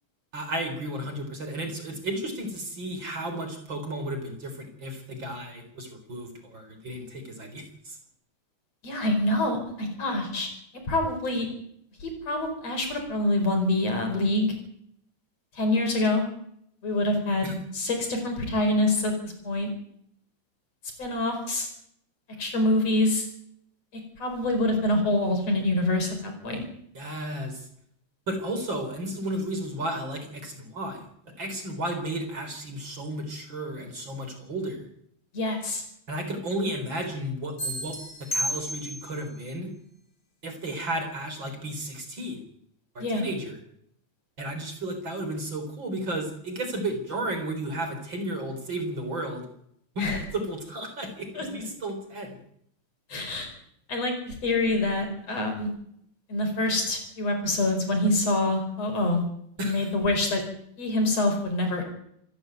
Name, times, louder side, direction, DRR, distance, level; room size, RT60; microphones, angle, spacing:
voice 1, 0.3-8.0 17.4-17.5 26.9-27.7 28.3-31.0 31.4-34.9 36.1-39.7 40.4-42.4 42.9-43.6 44.4-49.4 50.0-52.4 59.6-59.9, right 1 dB, 35° right, 6 dB, 4.7 m, -33 dB
voice 2, 8.8-10.5 10.9-11.5 12.0-14.5 15.5-16.2 16.8-19.7 21.0-21.7 22.4-23.3 24.2-26.6 35.3-35.8 43.0-43.2 50.0-50.2 51.4-51.5 53.1-53.5 53.9-55.7 56.3-59.2 59.6-60.4 60.8-61.8, left 2 dB, 55° left, 4 dB, 6.2 m, -26 dB
sound 1, 37.6-39.2, equal, 30° left, 7.6 m, -32 dB
27.0 x 11.5 x 9.3 m, 0.71 s
omnidirectional pair, 3.5 m